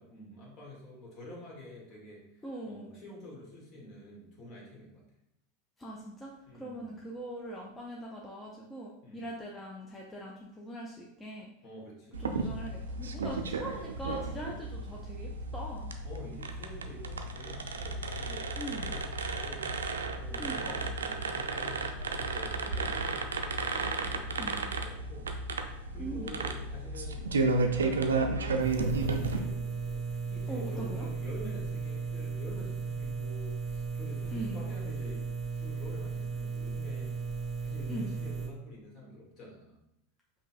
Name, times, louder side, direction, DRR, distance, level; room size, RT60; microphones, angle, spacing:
voice 1, 0.0-5.0 6.5-7.0 9.0-9.3 11.6-12.2 13.1-13.3 14.4-14.5 16.0-19.7 20.2-20.7 21.0-25.3 25.9-27.4 27.7-35.2 35.5-37.1 37.6-39.8, left 1 dB, 45° left, -2 dB, 1.5 m, -48 dB
voice 2, 2.4-2.9 5.8-11.5 12.2-15.9 18.6-18.9 20.3-20.9 24.4-24.6 26.0-26.4 30.5-31.1 34.3-34.6 37.9-38.1, right 1 dB, 15° left, -3 dB, 0.6 m, -41 dB
sound 1, 12.1-29.4, right 3 dB, 80° right, 0.4 m, -33 dB
sound 2, 28.6-38.5, right 5 dB, 20° right, 1.1 m, -36 dB
5.3 x 2.7 x 2.5 m, 0.85 s
figure-of-eight pair, 85°, 0 cm